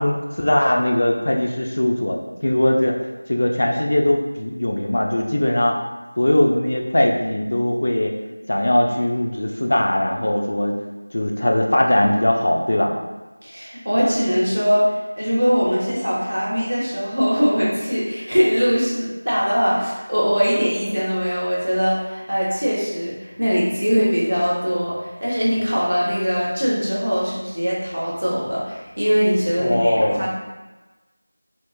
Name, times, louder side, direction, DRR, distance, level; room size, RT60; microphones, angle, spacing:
voice 1, 0.0-3.0 3.3-5.8 6.2-8.1 8.5-10.8 11.1-12.9 29.6-30.3, left 1 dB, 50° left, 1 dB, 0.4 m, -20 dB
voice 2, 13.4-30.3, equal, 80° right, -6 dB, 1.4 m, -21 dB
4.2 x 2.0 x 3.1 m, 1.1 s
figure-of-eight pair, 175°, 0 cm